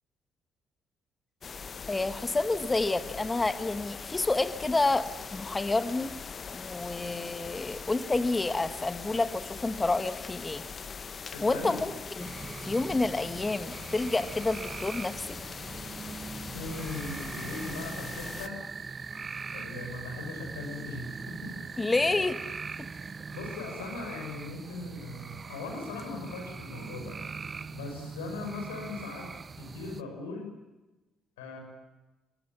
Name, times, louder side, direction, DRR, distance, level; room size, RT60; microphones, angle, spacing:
sound 1, 1.4-18.5, left 5 dB, 40° left, 1.1 m, -41 dB
voice 1, 1.9-6.2 6.5-10.6 11.4-12.3 12.6-15.4 21.8-22.4, left 2 dB, 20° left, 10 dB, 1.9 m, -29 dB
voice 2, 11.3-11.8 16.5-18.6 19.5-21.6 23.3-27.2 27.7-29.3 29.6-30.5 31.4-31.6, left 3 dB, 80° left, 3 dB, 6.6 m, -39 dB
sound 2, 12.2-30.0, right 5 dB, 35° right, 1.1 m, -41 dB
26.0 x 22.5 x 7.4 m, 1.1 s
figure-of-eight pair, 50°, 0 cm